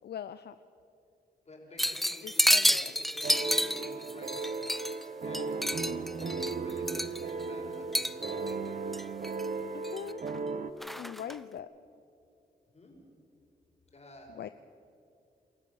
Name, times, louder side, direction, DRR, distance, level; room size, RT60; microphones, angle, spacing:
voice 1, 0.0-0.6 2.2-2.9 9.7-10.2 11.0-11.7 14.3-14.5, left 9 dB, 70° left, 12 dB, 0.5 m, -41 dB
voice 2, 1.5-4.9 5.2-8.4 12.7-12.9 13.9-14.4, left 1 dB, 40° left, 1 dB, 5.4 m, -50 dB
sound 1, 1.8-5.0 5.3-7.4 7.9-8.5 8.9-9.5 9.8-10.4 10.8-11.4, equal, ahead, 0.5 m, -29 dB
sound 2, 3.2-10.7, right 4 dB, 55° right, 1.0 m, -36 dB
26.5 x 14.0 x 7.1 m, 2.6 s
cardioid pair, 60°, 17 cm